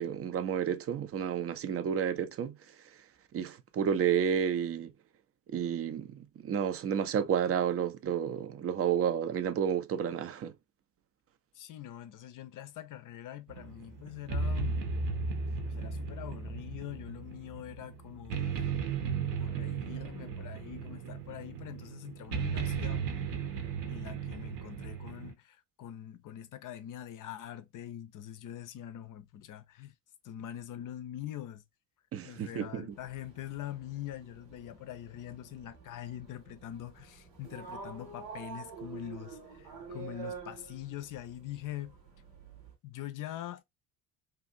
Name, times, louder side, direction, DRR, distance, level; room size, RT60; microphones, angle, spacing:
voice 1, 0.0-2.6 3.3-4.9 5.5-10.5 32.1-32.9, right 8 dB, 30° right, 0.5 m, -31 dB
voice 2, 11.5-14.9 15.6-18.8 19.2-23.1 23.9-29.9 30.2-31.6 32.2-42.0 42.8-43.6, left 12 dB, 40° left, 0.5 m, -43 dB
sound 1, 13.5-25.3, right 5 dB, 60° right, 0.9 m, -35 dB
sound 2, 32.9-42.7, right 5 dB, 85° right, 0.9 m, -48 dB
2.7 x 2.4 x 2.6 m
figure-of-eight pair, 45°, 49 cm